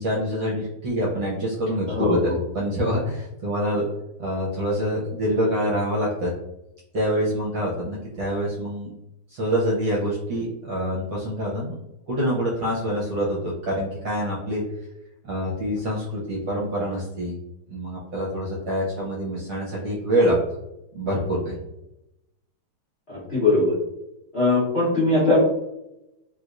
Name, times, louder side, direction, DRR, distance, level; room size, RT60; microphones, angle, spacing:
voice 1, 0.0-3.8 4.2-6.3 6.9-8.9 9.3-11.8 12.1-14.6 15.2-17.4 17.7-20.3 20.9-21.5, equal, 60° right, -6 dB, 1.1 m, -26 dB
voice 2, 1.9-2.3 23.1-23.7 24.3-25.4, left 2 dB, 45° left, -9 dB, 0.9 m, -20 dB
3.2 x 3.0 x 2.4 m, 0.89 s
omnidirectional pair, 2.3 m